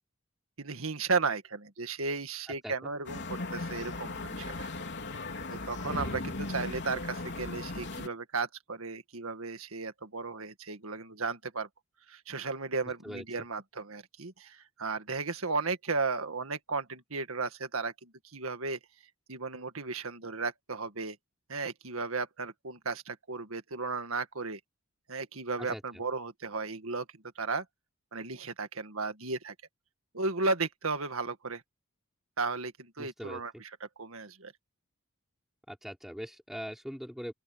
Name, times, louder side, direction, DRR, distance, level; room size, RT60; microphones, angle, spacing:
voice 1, 0.6-4.7 5.5-11.7 12.1-18.8 19.3-21.2 21.5-24.6 25.1-27.1 27.4-27.7 28.1-29.5 30.1-31.6 32.4-33.7 34.0-34.5, right 4 dB, 75° right, 1.9 m, -35 dB
sound 1, 3.0-8.1, left 2 dB, 55° left, 3.7 m, -37 dB
voice 2, 33.0-33.4 35.7-37.3, equal, ahead, 5.4 m, -41 dB
open air
head